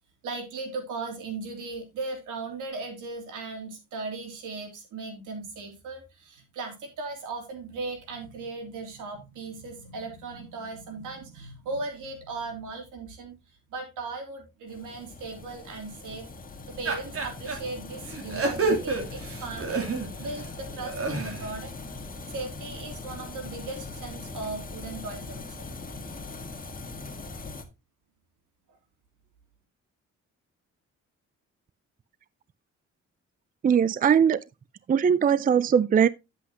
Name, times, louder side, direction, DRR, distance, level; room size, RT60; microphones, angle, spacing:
voice 1, 0.2-13.4 13.7-16.3 16.8-25.7, right 3 dB, 90° right, 3.3 m, -37 dB
sound 1, 14.7-27.6, left 3 dB, 30° left, 1.7 m, -41 dB
sound 2, 16.9-17.6 18.1-20.3 20.7-21.5, right 3 dB, 50° right, 3.0 m, -29 dB
voice 2, 33.6-34.4 34.9-36.1, right 7 dB, 30° right, 0.4 m, -20 dB
9.9 x 8.2 x 2.9 m
cardioid pair, 90°, 30 cm